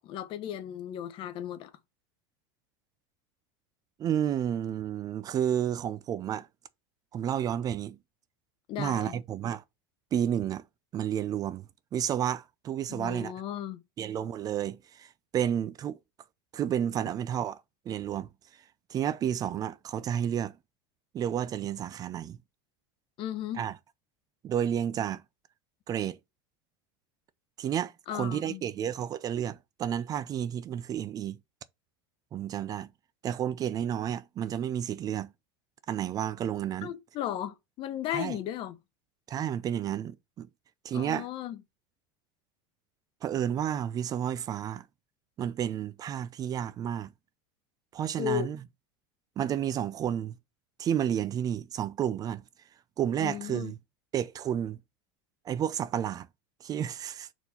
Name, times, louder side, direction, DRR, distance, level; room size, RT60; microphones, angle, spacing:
voice 1, 0.0-1.7 8.7-9.2 12.9-13.8 23.2-23.6 28.1-28.6 36.8-38.8 40.9-41.6 48.2-48.5 53.2-53.7, left 11 dB, 45° left, 0.9 m, -35 dB
voice 2, 4.0-6.5 7.1-8.0 8.8-9.6 10.1-10.6 10.9-11.7 11.9-13.3 14.0-16.0 16.5-17.6 17.9-18.3 18.9-20.5 21.1-22.4 23.6-23.7 24.4-25.2 25.9-26.2 27.6-31.4 32.3-32.9 33.2-35.3 35.9-36.9 38.1-38.4 39.3-40.5 40.8-41.3 43.2-44.8 45.4-47.1 47.9-48.6 49.4-50.4 50.8-52.4 53.0-53.8 54.1-54.8 55.5-56.3 56.6-57.3, right 9 dB, 30° right, 0.5 m, -31 dB
4.4 x 4.3 x 5.3 m
supercardioid pair, 125°, 12 cm